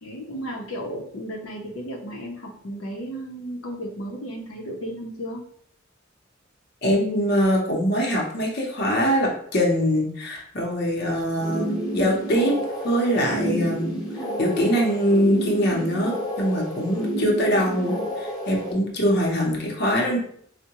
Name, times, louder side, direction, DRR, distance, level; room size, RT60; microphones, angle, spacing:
voice 1, 0.0-5.4 16.9-17.1, equal, 85° left, -1 dB, 0.7 m, -34 dB
voice 2, 6.8-12.6 12.8-13.9 14.4-20.2, equal, 55° left, -1 dB, 0.7 m, -23 dB
sound 1, 11.4-18.7, equal, 20° left, 0.6 m, -30 dB
4.4 x 2.1 x 2.9 m, 0.63 s
head